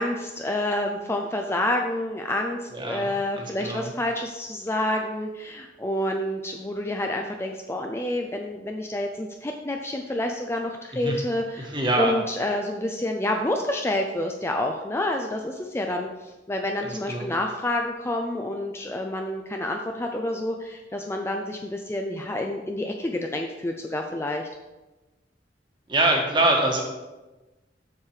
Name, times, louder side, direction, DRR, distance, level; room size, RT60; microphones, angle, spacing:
voice 1, 0.0-24.5, left 1 dB, 15° left, 2 dB, 0.5 m, -28 dB
voice 2, 2.7-3.9 11.0-11.2 11.6-12.2 16.8-17.3 25.9-26.8, right 1 dB, 25° right, 0 dB, 1.5 m, -24 dB
7.3 x 6.5 x 4.8 m, 1.1 s
head